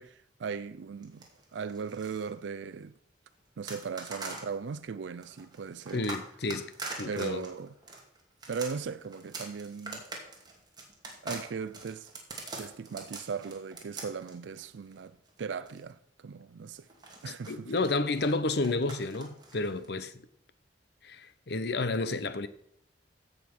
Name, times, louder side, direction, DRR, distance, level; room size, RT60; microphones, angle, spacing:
voice 1, 0.0-2.9 3.6-6.0 7.0-7.7 8.5-10.1 11.2-12.1 12.6-16.9 17.2-17.7, right 5 dB, 90° right, 0.4 m, -38 dB
sound 1, 1.0-2.3 3.7-4.5 5.2-15.8 16.9-19.9, right 3 dB, 25° right, 2.4 m, -43 dB
voice 2, 5.9-6.7 7.0-7.5 17.3-20.1 21.0-22.5, left 3 dB, 65° left, 0.9 m, -31 dB
15.5 x 5.5 x 6.1 m
head